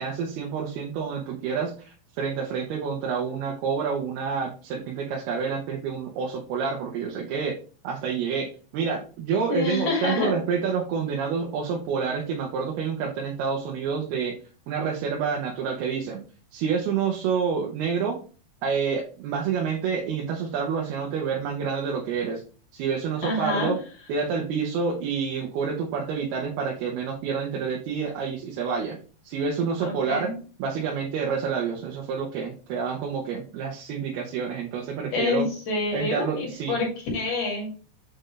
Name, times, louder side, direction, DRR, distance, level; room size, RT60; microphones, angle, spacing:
voice 1, 0.0-7.6 7.8-14.4 14.7-16.2 16.5-18.2 18.6-22.4 22.7-23.8 24.1-29.0 29.2-30.3 30.6-35.5 35.9-36.8, right 6 dB, 80° right, -1 dB, 3.0 m, -28 dB
voice 2, 9.5-10.4 23.2-23.7 29.8-30.3 35.1-36.9 37.1-37.7, left 3 dB, 60° left, -1 dB, 3.8 m, -27 dB
7.8 x 4.4 x 3.2 m, 0.38 s
omnidirectional pair, 4.5 m